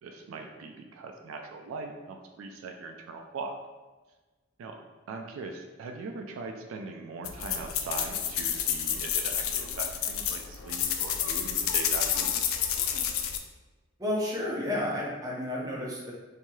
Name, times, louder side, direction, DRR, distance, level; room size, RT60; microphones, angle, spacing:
voice 1, 0.0-3.5 4.6-4.8 5.1-12.3, right 3 dB, 80° right, 3 dB, 0.3 m, -40 dB
sound 1, 7.2-13.4, left 8 dB, 85° left, 0.3 m, -29 dB
voice 2, 14.0-16.1, left 1 dB, 15° right, -5 dB, 0.6 m, -31 dB
3.1 x 2.7 x 2.2 m, 1.2 s
head